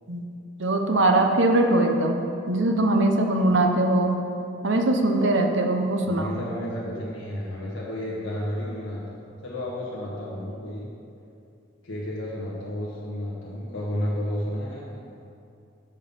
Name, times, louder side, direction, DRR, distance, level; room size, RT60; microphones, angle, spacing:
voice 1, 0.6-4.2 4.6-6.3, right 2 dB, 65° right, 4 dB, 0.8 m, -21 dB
voice 2, 6.0-9.2 9.4-10.9 11.8-15.0, equal, 75° left, -6 dB, 1.3 m, -32 dB
7.6 x 5.5 x 6.8 m, 2.6 s
head